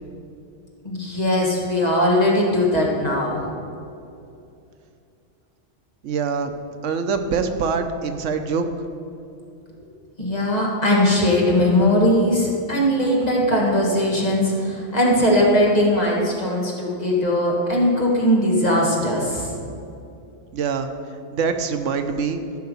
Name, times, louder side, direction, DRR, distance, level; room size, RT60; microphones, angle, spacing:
voice 1, 0.8-3.4 10.2-19.5, left 1 dB, 35° left, -3 dB, 1.8 m, -19 dB
voice 2, 6.0-6.5 6.8-8.6 20.5-20.9 21.3-22.4, right 5 dB, 85° right, 7 dB, 1.1 m, -24 dB
14.0 x 5.7 x 5.3 m, 2.6 s
omnidirectional pair, 1.2 m